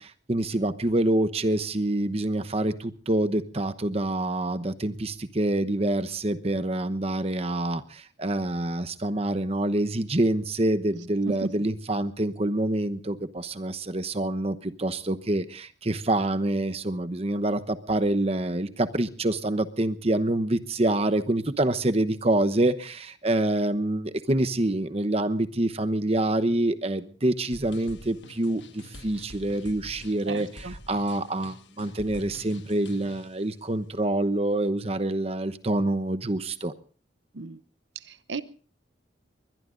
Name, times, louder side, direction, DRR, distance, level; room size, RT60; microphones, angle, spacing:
voice 1, 0.0-36.7, right 1 dB, 35° right, 11 dB, 1.0 m, -26 dB
sound 1, 27.5-33.4, left 1 dB, 80° left, 1.6 m, -46 dB
voice 2, 30.3-30.7 37.3-37.6 38.1-38.4, right 3 dB, 80° right, 15 dB, 0.8 m, -34 dB
22.0 x 21.5 x 2.6 m, 0.41 s
head